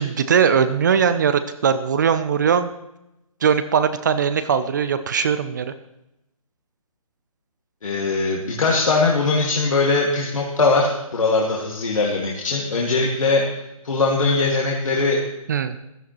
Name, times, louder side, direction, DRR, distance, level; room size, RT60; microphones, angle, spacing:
voice 1, 0.0-2.7 3.4-5.7 15.5-15.8, right 7 dB, 30° right, 11 dB, 0.5 m, -20 dB
voice 2, 7.8-13.4 13.8-15.2, left 3 dB, 60° left, -2 dB, 2.0 m, -20 dB
15.5 x 12.5 x 3.0 m, 0.87 s
figure-of-eight pair, 150°, 19 cm